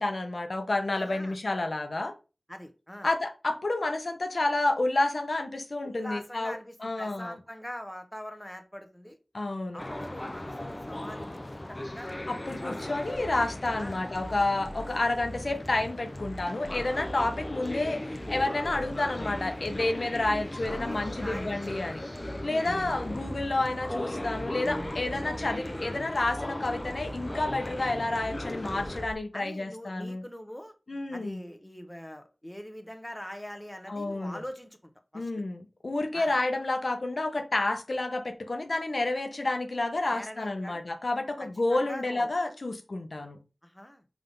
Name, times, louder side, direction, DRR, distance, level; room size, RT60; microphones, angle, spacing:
voice 1, 0.0-2.1 3.0-7.3 9.3-9.8 12.3-22.0 22.4-30.2 30.9-31.5 33.9-34.4 35.1-43.4, left 2 dB, 65° left, 0.9 m, -30 dB
voice 2, 0.9-1.4 2.5-3.1 5.8-9.2 9.7-12.1 12.6-13.0 13.8-14.0 14.8-14.9 20.8-21.8 22.3-22.6 29.3-30.7 31.1-35.3 36.1-36.4 40.1-40.8 41.4-42.3 43.6-44.0, equal, 10° left, 1.0 m, -43 dB
sound 1, 9.8-29.1, left 1 dB, 30° left, 0.6 m, -38 dB
sound 2, 13.1-29.1, right 1 dB, 25° right, 1.1 m, -43 dB
5.7 x 3.6 x 5.3 m
wide cardioid pair, 70°, 0 cm